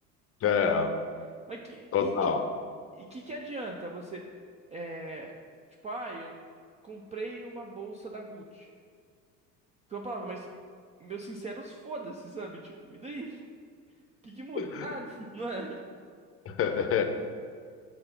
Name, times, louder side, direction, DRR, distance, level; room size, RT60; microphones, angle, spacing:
voice 1, 0.4-0.9 1.9-2.4 14.6-14.9 16.5-17.0, left 6 dB, 30° left, 7 dB, 0.7 m, -26 dB
voice 2, 1.5-2.3 2.9-4.2 4.7-5.3 5.8-6.3 6.8-8.7 9.9-10.5 11.0-13.4 14.2-15.8, right 2 dB, 15° right, 1 dB, 0.3 m, -39 dB
6.6 x 3.9 x 5.8 m, 2.1 s
figure-of-eight pair, 70°, 48 cm